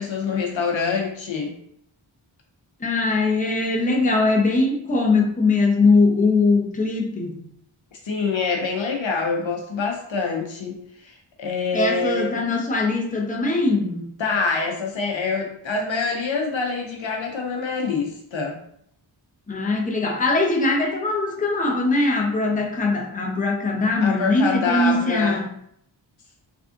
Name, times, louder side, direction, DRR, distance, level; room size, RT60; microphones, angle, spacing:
voice 1, 0.0-1.5 8.0-10.8 11.0-12.4 14.2-18.5 24.0-25.4, left 4 dB, 70° left, 1 dB, 0.7 m, -25 dB
voice 2, 2.8-7.4 11.7-14.1 19.5-25.5, left 3 dB, 15° left, 0 dB, 0.6 m, -21 dB
3.5 x 2.4 x 2.5 m, 0.70 s
wide cardioid pair, 55°, 48 cm